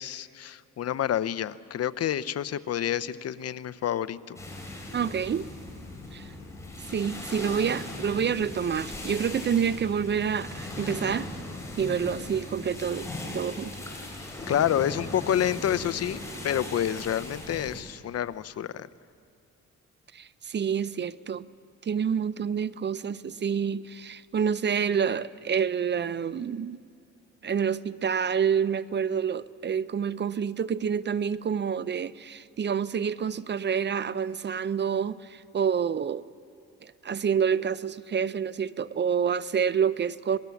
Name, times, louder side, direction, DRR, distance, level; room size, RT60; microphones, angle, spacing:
voice 1, 0.0-4.4 14.5-16.2 16.4-18.9, left 10 dB, 55° left, 0.7 m, -28 dB
sound 1, 4.4-17.8, left 2 dB, 10° left, 5.5 m, -39 dB
voice 2, 4.9-5.5 6.1-6.3 6.9-11.3 11.8-13.8 20.1-21.4 21.8-26.8 27.4-36.3 36.8-40.4, right 7 dB, 35° right, 0.6 m, -28 dB
27.5 x 20.5 x 7.1 m
cardioid pair, 90°, 30 cm